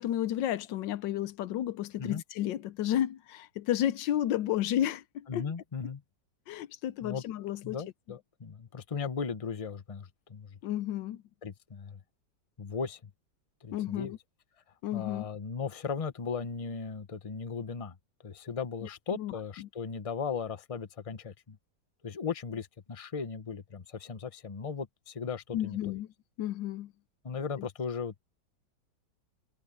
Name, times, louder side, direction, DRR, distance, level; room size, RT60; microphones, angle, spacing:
voice 1, 0.0-5.5 6.5-7.8 10.6-11.2 13.7-14.2 14.8-15.3 18.8-19.7 25.5-26.1 26.4-26.9, left 12 dB, 90° left, 1.4 m, -32 dB
voice 2, 5.3-6.0 7.0-7.2 7.6-10.6 11.4-12.0 12.6-13.1 13.6-14.1 14.9-18.0 18.2-21.6 22.0-25.8 27.2-28.2, left 5 dB, 25° left, 0.9 m, -37 dB
omnidirectional pair, 1.9 m